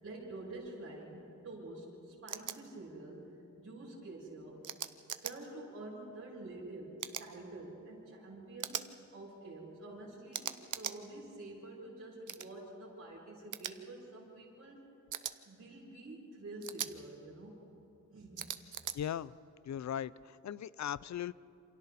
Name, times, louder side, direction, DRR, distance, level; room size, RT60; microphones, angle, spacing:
voice 1, 0.0-3.3 3.6-4.6 5.2-8.8 9.1-14.8 15.5-17.5 18.1-18.4, right 2 dB, 50° right, -6 dB, 7.1 m, -48 dB
sound 1, 2.3-2.6 4.6-5.3 7.0-7.3 8.6-8.9 10.3-11.0 12.3-12.5 13.5-13.7 15.1-15.3 16.6-16.9 18.4-19.0, right 9 dB, 90° right, 0.9 m, -39 dB
voice 2, 18.9-19.3 19.7-21.3, left 10 dB, 70° left, 19 dB, 0.5 m, -38 dB
28.0 x 27.0 x 4.2 m, 2.9 s
wide cardioid pair, 165°, 30 cm